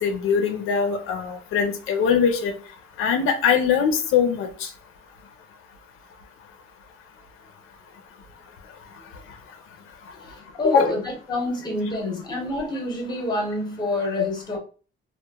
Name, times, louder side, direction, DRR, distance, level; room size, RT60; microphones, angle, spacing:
voice 1, 0.0-2.5 3.0-4.7 10.6-10.9, left 7 dB, 85° left, 5 dB, 0.5 m, -22 dB
voice 2, 10.2-14.6, left 1 dB, 20° left, 1 dB, 0.7 m, -27 dB
2.9 x 2.1 x 2.2 m, 0.37 s
cardioid pair, 160°, 21 cm